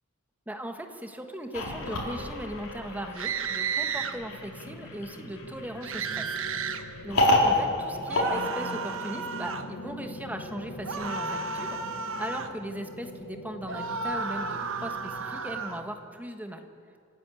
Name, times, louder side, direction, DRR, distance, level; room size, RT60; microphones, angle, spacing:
voice 1, 0.5-6.4 7.0-16.6, right 1 dB, 10° right, 5 dB, 1.3 m, -38 dB
sound 1, 1.5-9.2, left 1 dB, 80° left, 4.4 m, -30 dB
sound 2, 1.8-15.8, left 1 dB, 60° left, 1.5 m, -43 dB
sound 3, 3.1-4.1 5.8-6.8 8.1-9.7 10.8-12.5 13.7-15.8, right 5 dB, 65° right, 1.1 m, -33 dB
27.5 x 10.5 x 9.0 m, 2.4 s
head